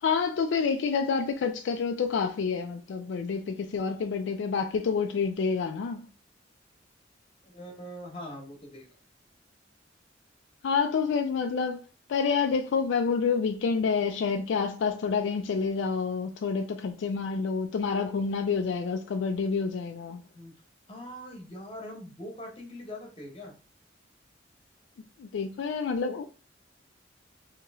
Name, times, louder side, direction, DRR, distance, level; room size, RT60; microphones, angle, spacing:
voice 1, 0.0-6.0 10.6-11.8 12.1-20.2 25.2-26.3, left 5 dB, 70° left, 0.3 m, -28 dB
voice 2, 7.4-9.0 20.3-20.5 20.9-23.5, left 1 dB, 30° left, 1.0 m, -42 dB
3.0 x 2.8 x 3.4 m
head